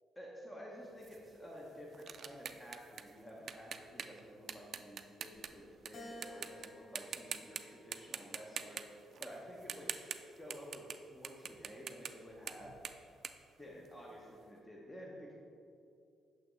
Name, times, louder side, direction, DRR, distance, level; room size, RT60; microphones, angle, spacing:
voice 1, 0.2-8.8 9.2-9.9 10.4-10.8 11.1-12.7 13.6-15.3, equal, 15° left, -3 dB, 0.9 m, -51 dB
sound 1, 1.0-5.9 6.2-6.7 7.0-7.6 7.9-11.0 11.2-14.3, right 7 dB, 55° right, 0.3 m, -45 dB
Keyboard (musical), 5.9-8.4 9.0-10.2, left 1 dB, 50° left, 0.7 m, -55 dB
6.6 x 5.7 x 3.1 m, 2.6 s
cardioid pair, 90°, 0 cm